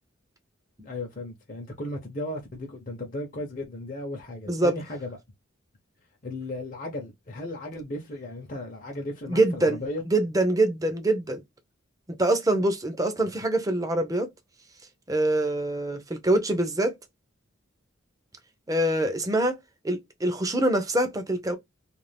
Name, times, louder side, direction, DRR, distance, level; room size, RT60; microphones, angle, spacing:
voice 1, 0.8-5.2 6.2-10.0, left 1 dB, 40° left, 0.7 m, -35 dB
voice 2, 9.3-9.8 10.1-11.4 12.2-14.3 15.1-17.0 18.7-19.6 19.8-21.6, right 1 dB, 15° right, 0.6 m, -24 dB
2.5 x 2.4 x 3.3 m
head